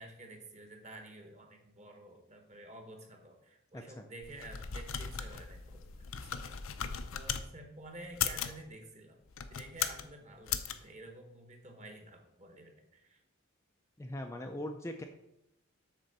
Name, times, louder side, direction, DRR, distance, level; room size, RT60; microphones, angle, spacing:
voice 1, 0.0-5.8 6.1-6.5 7.1-9.2 9.6-13.2, right 1 dB, 30° right, 4 dB, 1.3 m, -50 dB
voice 2, 3.7-4.0 14.0-15.0, left 1 dB, 15° left, 4 dB, 0.4 m, -40 dB
sound 1, 4.2-7.5 8.1-8.6 9.3-10.1 10.5-10.7, left 8 dB, 70° left, 0.6 m, -37 dB
8.2 x 3.7 x 6.6 m, 0.83 s
head